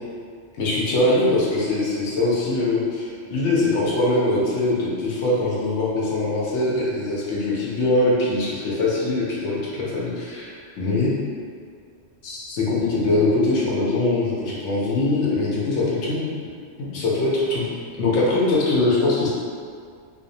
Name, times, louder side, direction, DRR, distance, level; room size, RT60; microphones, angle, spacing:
voice 1, 0.6-11.2 12.2-16.3 16.8-17.7 18.0-19.3, left 2 dB, 75° left, -6 dB, 0.9 m, -22 dB
2.6 x 2.0 x 2.6 m, 2.2 s
omnidirectional pair, 1.3 m